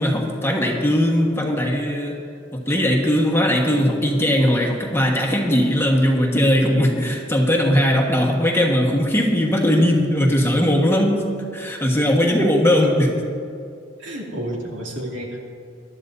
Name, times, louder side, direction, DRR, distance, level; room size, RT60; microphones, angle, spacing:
voice 1, 0.0-2.2 2.5-11.3 11.5-13.1, equal, 15° left, 0 dB, 1.4 m, -19 dB
voice 2, 14.0-15.4, right 1 dB, 70° right, -2 dB, 2.6 m, -30 dB
23.0 x 12.0 x 2.7 m, 2.5 s
head